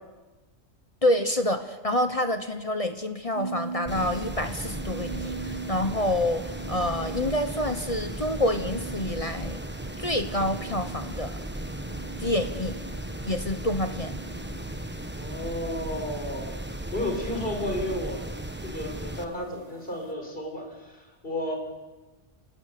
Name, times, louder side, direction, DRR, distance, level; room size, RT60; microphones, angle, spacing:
voice 1, 1.0-9.6 10.0-11.4 12.2-12.8 13.2-14.2, left 1 dB, 30° left, 8 dB, 1.1 m, -27 dB
sound 1, 3.3-20.1, right 5 dB, 35° right, 1.6 m, -42 dB
sound 2, 3.9-19.2, right 1 dB, 10° right, 1.1 m, -36 dB
voice 2, 15.1-18.2 18.6-21.6, left 1 dB, 45° left, 2 dB, 5.2 m, -33 dB
28.0 x 19.0 x 6.8 m, 1.2 s
omnidirectional pair, 1.3 m